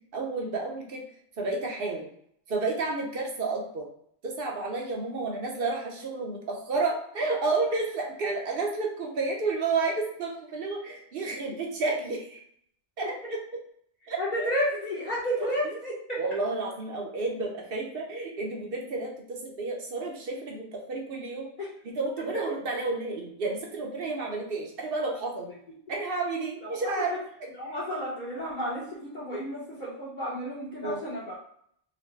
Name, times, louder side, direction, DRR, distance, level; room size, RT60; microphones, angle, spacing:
voice 1, 0.1-1.0 1.4-2.1 2.5-3.9 4.2-12.4 13.0-13.4 14.1-14.5 15.4-15.5 16.2-21.5 21.8-25.5 25.9-27.1 30.8-31.0, right 3 dB, 55° right, 0 dB, 0.9 m, -31 dB
voice 2, 14.2-16.2 21.6-21.7 26.6-27.2 27.6-31.4, equal, 45° left, -8 dB, 1.1 m, -32 dB
4.0 x 2.1 x 3.2 m, 0.67 s
omnidirectional pair, 1.2 m